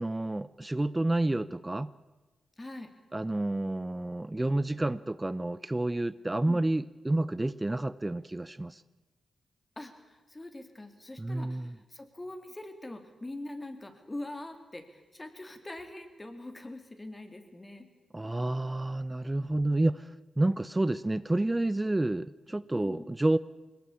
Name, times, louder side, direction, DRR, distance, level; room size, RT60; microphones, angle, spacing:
voice 1, 0.0-1.9 3.1-8.8 11.2-11.8 18.1-23.4, right 2 dB, 20° right, 17 dB, 0.7 m, -29 dB
voice 2, 2.6-2.9 6.5-6.7 9.8-17.9 22.7-23.0, left 1 dB, 25° left, 7 dB, 3.7 m, -43 dB
21.5 x 19.0 x 8.6 m, 1.2 s
cardioid pair, 55°, 0 cm